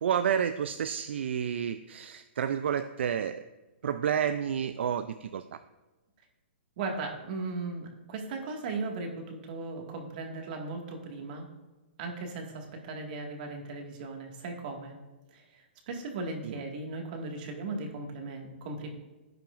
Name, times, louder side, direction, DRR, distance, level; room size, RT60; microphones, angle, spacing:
voice 1, 0.0-3.4 3.8-5.6 16.4-16.6, right 8 dB, 70° right, 11 dB, 0.4 m, -30 dB
voice 2, 6.8-11.5 12.0-14.9 15.3-18.9, right 3 dB, 45° right, 2 dB, 1.9 m, -37 dB
15.5 x 5.9 x 2.5 m, 1.2 s
hypercardioid pair, 150°, 7 cm